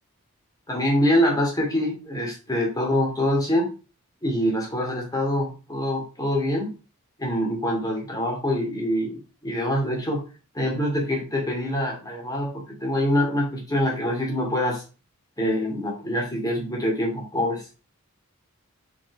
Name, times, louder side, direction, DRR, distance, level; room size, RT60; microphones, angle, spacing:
voice 1, 0.7-3.7 4.2-6.7 7.2-10.2 10.5-14.8 15.4-17.6, equal, 15° left, -2 dB, 2.8 m, -25 dB
6.0 x 4.8 x 4.8 m, 0.33 s
head